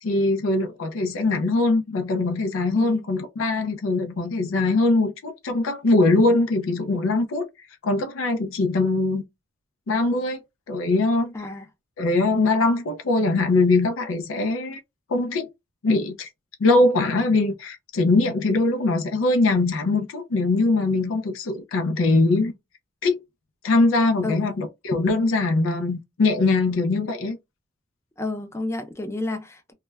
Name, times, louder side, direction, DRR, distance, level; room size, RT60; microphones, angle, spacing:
voice 1, 0.0-7.4 7.8-9.2 9.9-10.4 10.7-11.3 12.0-14.8 15.1-15.5 15.8-16.3 16.6-22.5 23.0-23.2 23.6-27.4, left 2 dB, 90° left, 0.5 m, -22 dB
voice 2, 2.8-3.1 11.3-11.7 24.2-24.6 28.2-29.7, left 2 dB, 15° left, 0.4 m, -31 dB
2.2 x 2.1 x 3.1 m
head